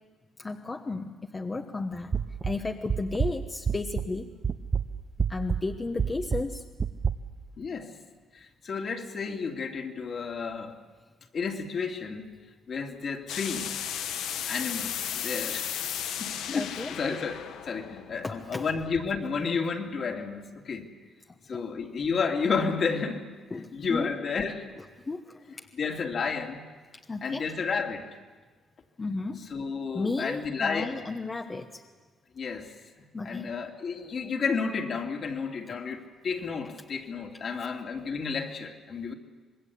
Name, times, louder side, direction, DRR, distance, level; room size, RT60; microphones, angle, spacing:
voice 1, 0.4-2.1 2.4-4.3 5.3-6.6 16.5-16.9 18.2-18.6 21.5-21.6 23.5-24.1 25.1-25.7 27.1-27.5 29.0-29.4 29.9-31.8 33.1-33.5, left 3 dB, 25° left, 4 dB, 1.2 m, -33 dB
sound 1, 2.1-4.2 4.4-7.1, right 6 dB, 35° right, 1.0 m, -29 dB
voice 2, 7.6-7.9 8.3-10.8 11.3-12.3 12.7-13.7 14.5-15.7 16.2-20.9 21.5-23.3 23.5-24.7 25.7-26.6 27.2-28.1 29.0-29.1 29.5-31.0 32.3-32.7 33.2-39.1, left 5 dB, 55° left, 2 dB, 2.7 m, -31 dB
sound 2, 13.3-19.0, left 9 dB, 85° left, 1.2 m, -35 dB
26.0 x 20.5 x 8.5 m, 1.4 s
cardioid pair, 90°, 0 cm